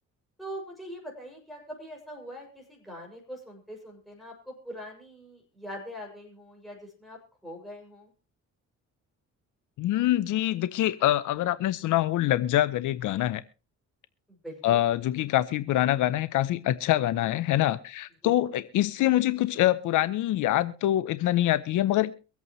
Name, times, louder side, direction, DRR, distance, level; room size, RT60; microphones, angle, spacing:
voice 1, 0.4-8.1 14.3-14.8 18.2-18.3, equal, ahead, 6.3 m, -42 dB
voice 2, 9.8-13.4 14.6-22.1, left 14 dB, 80° left, 0.7 m, -25 dB
24.0 x 8.4 x 3.1 m
cardioid pair, 90°, 30 cm